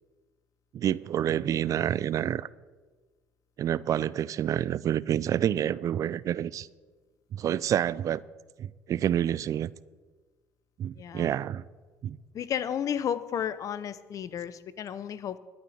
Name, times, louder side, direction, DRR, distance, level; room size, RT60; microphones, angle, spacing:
voice 1, 0.7-2.5 3.6-6.7 7.3-8.2 8.6-9.7 10.8-11.6 12.0-12.2, right 10 dB, 50° right, 0.4 m, -28 dB
voice 2, 11.0-11.4 12.3-15.4, left 9 dB, 50° left, 0.7 m, -33 dB
11.5 x 5.8 x 8.5 m
supercardioid pair, 75°, 7 cm